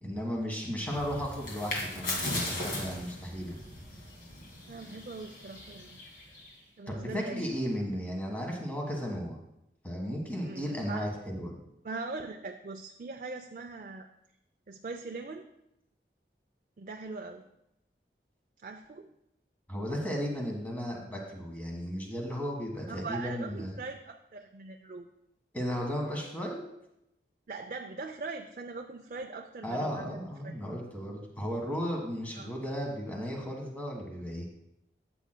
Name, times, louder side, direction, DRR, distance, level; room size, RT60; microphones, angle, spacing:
voice 1, 0.0-3.6 6.9-9.4 9.8-11.6 19.7-23.8 25.5-26.6 29.6-34.5, equal, 10° left, 0 dB, 1.4 m, -35 dB
sound 1, 0.8-6.6, left 1 dB, 50° left, 2.3 m, -38 dB
voice 2, 4.7-6.0 6.8-7.5 10.4-11.1 11.8-14.1 14.7-15.5 16.8-17.4 18.6-19.1 22.9-25.1 27.5-30.5 32.4-32.5, right 3 dB, 45° right, 4 dB, 0.4 m, -41 dB
13.0 x 7.7 x 2.2 m, 0.83 s
head